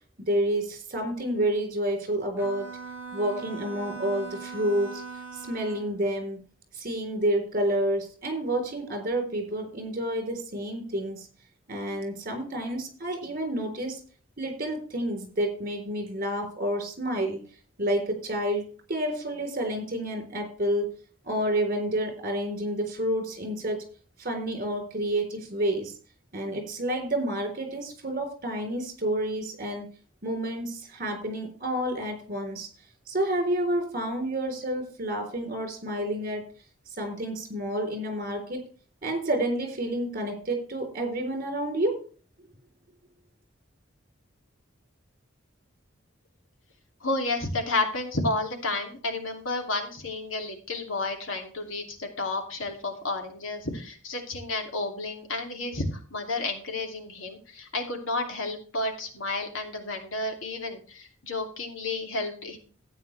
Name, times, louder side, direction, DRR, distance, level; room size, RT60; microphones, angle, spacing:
voice 1, 0.2-2.8 3.1-5.0 5.3-6.4 6.7-11.3 11.7-14.0 14.4-17.4 17.8-20.9 21.2-23.8 24.2-25.9 26.3-29.9 30.2-32.7 33.1-36.4 37.0-38.7 39.0-42.0, right 1 dB, 45° right, 5 dB, 3.9 m, -29 dB
Bowed string instrument, 2.4-6.0, right 5 dB, 10° right, 6.1 m, -40 dB
voice 2, 47.0-62.6, left 2 dB, 90° left, 3 dB, 2.8 m, -31 dB
13.0 x 9.2 x 3.3 m, 0.40 s
head